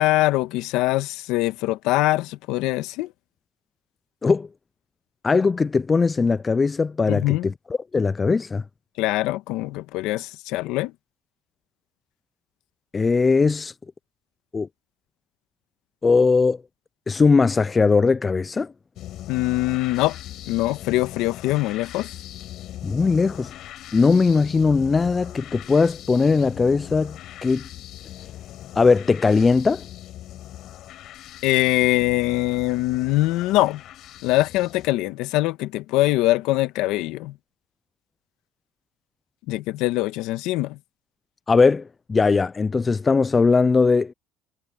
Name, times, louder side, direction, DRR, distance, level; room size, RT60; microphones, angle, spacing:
voice 1, 0.0-3.1 7.1-7.5 9.0-10.9 19.3-20.2 20.5-22.2 31.4-33.8 34.2-37.3 39.5-40.8, left 17 dB, 80° left, 1.4 m, -23 dB
voice 2, 5.2-7.5 7.9-8.6 12.9-13.7 14.5-14.7 16.0-16.6 17.1-18.7 22.8-23.5 23.9-27.6 28.8-29.8 41.5-41.8 42.1-44.1, left 4 dB, 25° left, 0.3 m, -19 dB
sound 1, 19.0-34.9, left 13 dB, 65° left, 7.7 m, -40 dB
supercardioid pair, 100°, 0 cm